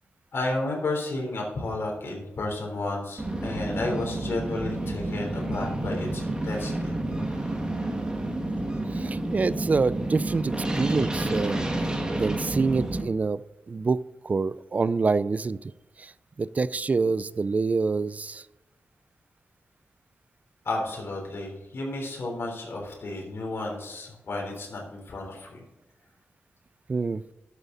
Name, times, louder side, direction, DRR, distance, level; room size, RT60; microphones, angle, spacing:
voice 1, 0.3-6.9 7.2-7.5 20.7-25.6, left 2 dB, 60° left, -1 dB, 3.5 m, -32 dB
sound 1, 3.2-13.0, right 1 dB, 20° right, 1.6 m, -30 dB
voice 2, 8.9-11.6 12.1-13.4 13.7-15.7 16.0-16.1 16.4-18.4 26.9-27.2, right 4 dB, 35° right, 18 dB, 0.3 m, -26 dB
12.0 x 8.3 x 3.9 m, 0.98 s
wide cardioid pair, 140°, 4 cm